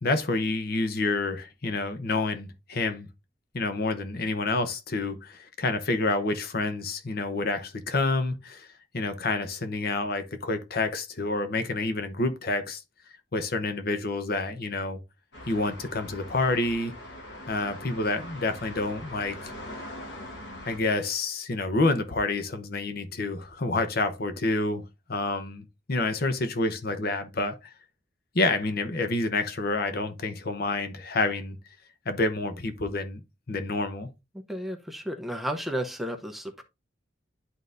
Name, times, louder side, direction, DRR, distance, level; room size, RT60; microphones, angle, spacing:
voice 1, 0.0-3.1 3.5-8.7 8.9-12.8 13.3-15.0 15.5-16.9 17.5-19.4 20.7-24.8 25.1-27.7 28.3-31.6 32.1-33.2 33.5-34.1, left 2 dB, 55° left, 0.9 m, -28 dB
sound 1, 15.3-20.8, left 1 dB, 80° left, 1.9 m, -42 dB
voice 2, 34.5-36.6, equal, ahead, 0.8 m, -33 dB
11.0 x 4.0 x 2.6 m
head